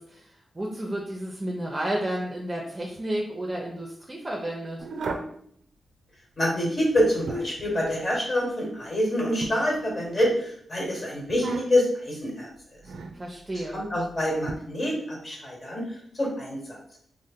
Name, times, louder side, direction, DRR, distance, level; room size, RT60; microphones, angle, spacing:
voice 1, 0.0-4.8 13.1-13.8, right 1 dB, 30° right, -2 dB, 0.6 m, -32 dB
sound 1, 4.8-5.4 6.9-7.7 9.4-10.3 11.3-12.0 12.8-13.2 14.5-14.6, right 3 dB, 80° right, 0.4 m, -35 dB
voice 2, 6.4-12.5 13.7-16.8, left 1 dB, 45° left, -2 dB, 1.4 m, -26 dB
2.8 x 2.1 x 3.5 m, 0.65 s
cardioid pair, 55°, 0 cm